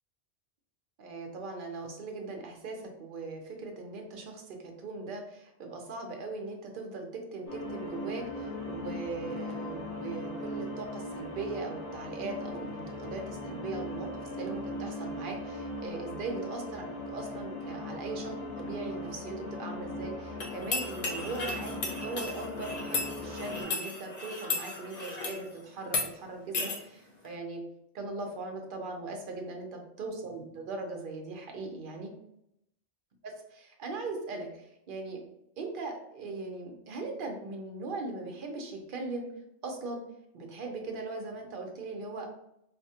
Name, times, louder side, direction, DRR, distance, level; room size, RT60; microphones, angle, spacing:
voice 1, 1.0-16.8 17.1-27.6 27.9-32.1 33.2-35.2 35.6-39.3 39.6-40.0 40.3-42.3, right 3 dB, 55° right, 2 dB, 0.8 m, -39 dB
sound 1, 7.5-23.6, left 1 dB, 75° left, 1.8 m, -39 dB
sound 2, 20.4-25.4 25.8-26.1 26.5-26.8, left 3 dB, 45° left, 0.6 m, -34 dB
4.1 x 2.2 x 2.8 m, 0.78 s
omnidirectional pair, 1.2 m